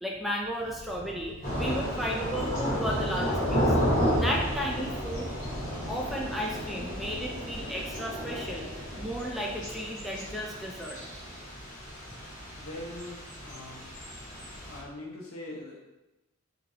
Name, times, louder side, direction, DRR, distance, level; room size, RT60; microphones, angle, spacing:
voice 1, 0.0-3.8 4.1-5.3 5.9-8.7 9.0-11.0, equal, ahead, -2 dB, 0.3 m, -34 dB
Animal, 0.6-5.1 5.4-9.3, equal, 85° right, 0.9 m, -46 dB
Thunder / Rain, 1.4-14.8, equal, 40° left, 1.2 m, -32 dB
voice 2, 12.6-13.8 14.2-15.8, left 1 dB, 85° left, -3 dB, 1.0 m, -43 dB
3.8 x 3.2 x 2.7 m, 1.0 s
head